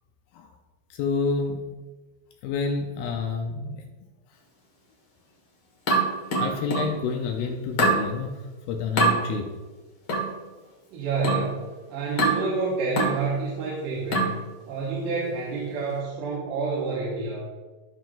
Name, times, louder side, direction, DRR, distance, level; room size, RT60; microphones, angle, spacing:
voice 1, 0.9-1.6 2.4-3.8 6.4-8.4 8.7-9.5, left 4 dB, 80° left, 3 dB, 2.2 m, -28 dB
sound 1, 5.9-7.0 7.8-8.1 9.0-9.2 10.1-10.3 11.2-11.5 12.2-12.5 13.0-13.2 14.1-14.4, right 2 dB, 50° left, 1.6 m, -23 dB
voice 2, 10.9-11.5 11.9-14.4 14.7-17.5, right 4 dB, 80° right, -6 dB, 3.4 m, -28 dB
14.0 x 5.6 x 2.5 m, 1.3 s
omnidirectional pair, 5.0 m